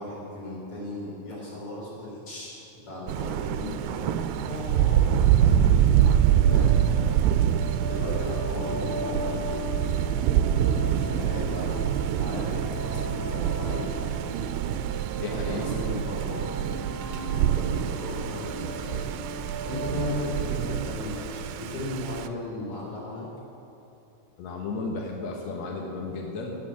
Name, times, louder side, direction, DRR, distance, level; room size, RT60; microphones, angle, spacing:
voice 1, 0.0-2.6 2.8-9.7 10.2-14.2 15.2-16.4 17.3-23.3, left 1 dB, 35° left, -5 dB, 4.4 m, -36 dB
Thunder, 3.1-22.3, right 10 dB, 85° right, 2.7 m, -25 dB
sound 1, 5.9-21.3, equal, 65° right, 1.7 m, -39 dB
voice 2, 15.2-15.6 24.4-26.6, left 3 dB, 70° left, 0 dB, 1.6 m, -33 dB
16.5 x 7.0 x 7.3 m, 2.9 s
omnidirectional pair, 4.7 m